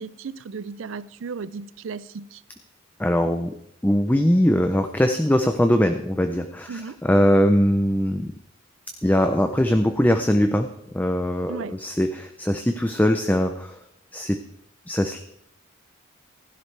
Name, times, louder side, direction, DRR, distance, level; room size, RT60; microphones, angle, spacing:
voice 1, 0.0-2.4 6.7-7.0 11.5-11.8, right 5 dB, 70° right, 0.5 m, -35 dB
voice 2, 3.0-3.5 3.8-8.3 9.0-13.8 14.1-14.4 14.9-15.2, equal, 10° left, 0.5 m, -21 dB
15.5 x 11.0 x 3.3 m
head